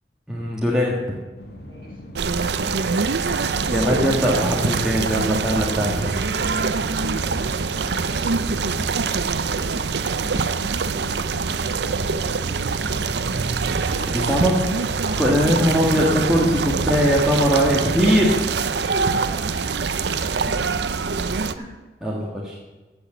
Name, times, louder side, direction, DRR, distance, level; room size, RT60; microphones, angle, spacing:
voice 1, 0.3-1.0 3.7-6.1 14.1-14.6 15.2-18.4 22.0-22.5, equal, 5° right, -5 dB, 1.7 m, -20 dB
sound 1, 1.4-15.8, equal, 65° left, 2.2 m, -40 dB
sound 2, 2.1-21.5, right 4 dB, 75° right, 0.6 m, -24 dB
voice 2, 13.8-14.3 15.0-15.4 18.8-19.4 20.0-21.0 21.6-21.7, equal, 30° right, -2 dB, 4.1 m, -38 dB
15.5 x 6.2 x 7.8 m, 1.2 s
head